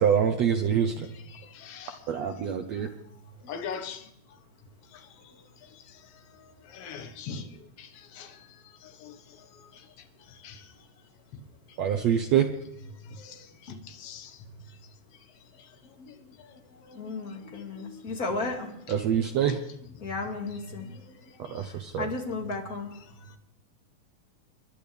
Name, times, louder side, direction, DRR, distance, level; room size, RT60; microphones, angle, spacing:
voice 1, 0.0-1.1 2.1-2.9 11.8-12.5 18.9-19.6 21.5-22.1, right 8 dB, 85° right, 1.4 m, -25 dB
voice 2, 0.9-4.4 4.8-11.4 11.7-11.8 12.4-12.5 12.9-18.2 18.9-19.0 19.5-19.6 20.0-21.8 22.4-22.6 22.9-23.4, left 5 dB, 50° left, 2.0 m, -46 dB
voice 3, 17.0-18.7 20.0-20.9 21.7-22.9, left 3 dB, 25° left, 2.3 m, -34 dB
29.5 x 11.5 x 3.5 m
omnidirectional pair, 4.3 m